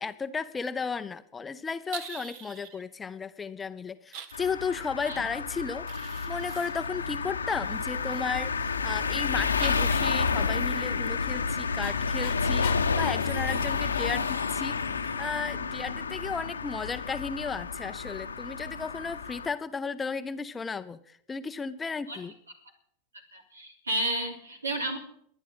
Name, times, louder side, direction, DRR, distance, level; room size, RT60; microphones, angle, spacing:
voice 1, 0.0-5.9 6.3-14.8 15.2-22.3, left 5 dB, 15° left, 12 dB, 0.7 m, -34 dB
sound 1, 1.9-2.8 4.1-4.4 5.9-8.2 9.6-11.3 13.2-15.2, right 8 dB, 45° right, 1.3 m, -46 dB
sound 2, 4.3-19.5, left 5 dB, 75° left, 1.1 m, -30 dB
Dog, 10.6-14.4, left 16 dB, 50° left, 1.2 m, -43 dB
voice 2, 23.3-25.0, right 1 dB, 80° right, 5 dB, 3.2 m, -31 dB
23.0 x 10.5 x 5.5 m, 0.69 s
figure-of-eight pair, 90°, 0 cm